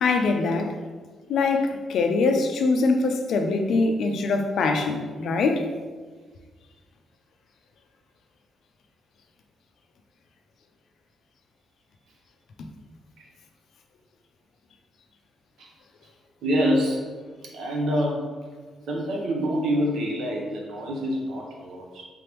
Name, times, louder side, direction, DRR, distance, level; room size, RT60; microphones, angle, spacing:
voice 1, 0.0-0.7 1.3-5.7, left 3 dB, 60° left, 5 dB, 0.4 m, -23 dB
voice 2, 16.4-17.1 17.5-18.2 18.9-22.0, equal, 75° right, -2 dB, 0.8 m, -26 dB
3.7 x 3.4 x 3.0 m, 1.5 s
wide cardioid pair, 180°, 0 cm